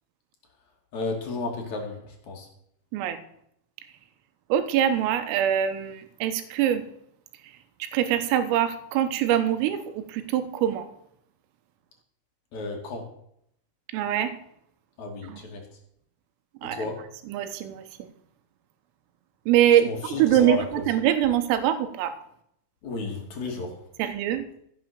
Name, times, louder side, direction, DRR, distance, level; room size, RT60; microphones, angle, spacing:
voice 1, 0.9-2.5 12.5-13.0 15.0-15.6 16.6-17.0 19.8-20.8 22.8-23.7, left 3 dB, 45° left, 1 dB, 2.9 m, -33 dB
voice 2, 4.5-6.8 7.8-10.9 13.9-14.4 15.3-15.4 16.6-16.9 17.3-18.1 19.5-22.2 24.0-24.4, right 10 dB, 85° right, 10 dB, 3.7 m, -24 dB
15.0 x 7.7 x 6.8 m, 0.71 s
omnidirectional pair, 6.0 m